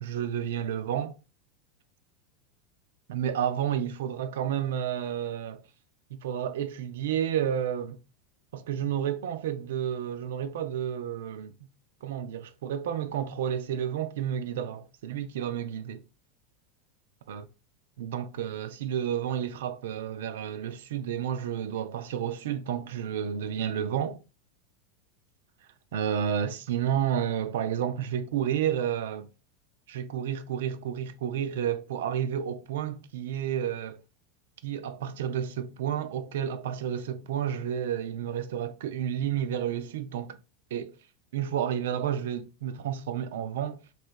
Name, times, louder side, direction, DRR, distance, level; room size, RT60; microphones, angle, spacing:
voice 1, 0.0-1.2 3.1-5.6 6.1-8.0 8.5-11.5 12.0-16.0 17.3-17.4 18.0-24.2 25.9-29.3 29.9-34.0 34.6-40.4 40.7-40.9 41.3-43.8, right 9 dB, 65° right, 0.4 m, -31 dB
3.3 x 3.0 x 4.2 m
figure-of-eight pair, 85°, 0 cm